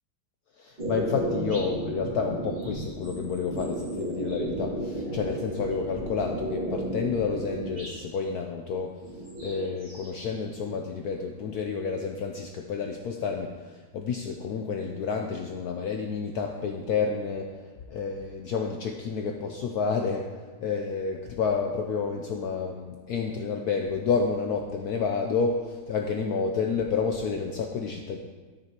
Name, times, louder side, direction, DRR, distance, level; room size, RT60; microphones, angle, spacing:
voice 1, 0.6-8.9 9.4-17.5 17.9-20.3 20.6-28.2, left 5 dB, 80° left, 2 dB, 0.8 m, -30 dB
sound 1, 0.8-8.0 9.0-10.3 10.6-11.6, right 1 dB, 30° right, 2.0 m, -34 dB
12.5 x 6.7 x 2.9 m, 1.4 s
omnidirectional pair, 2.3 m